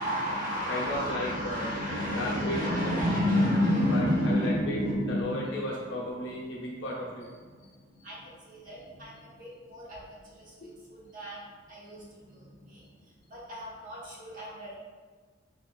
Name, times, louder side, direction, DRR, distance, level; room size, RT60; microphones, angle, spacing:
voice 1, 0.0-5.5 5.9-6.0 7.5-7.7 8.0-12.9 13.3-14.7, left 1 dB, 45° right, -7 dB, 1.1 m, -31 dB
voice 2, 0.7-1.7 2.1-3.0 3.9-4.8 5.0-7.3 10.6-10.7, left 1 dB, 70° left, -4 dB, 0.8 m, -34 dB
3.8 x 3.6 x 2.3 m, 1.5 s
head